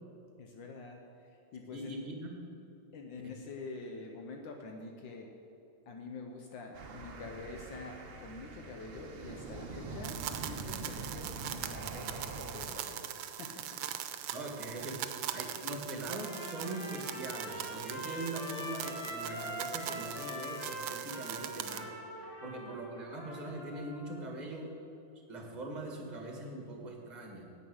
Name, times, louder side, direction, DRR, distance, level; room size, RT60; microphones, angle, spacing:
voice 1, 0.4-2.0 2.9-5.3 5.9-13.8 22.4-22.7, left 3 dB, 70° left, 2 dB, 1.5 m, -46 dB
voice 2, 1.6-2.3 3.2-3.3 9.7-9.8 14.3-21.9 22.4-24.7 25.3-27.4, right 2 dB, 25° right, 1 dB, 1.4 m, -41 dB
sound 1, 6.7-12.7, right 3 dB, 55° right, 0.6 m, -44 dB
sound 2, 10.0-21.8, right 11 dB, 85° right, 1.4 m, -41 dB
Trumpet, 16.1-24.2, equal, 90° left, 3.0 m, -43 dB
9.6 x 8.4 x 6.2 m, 2.7 s
omnidirectional pair, 2.2 m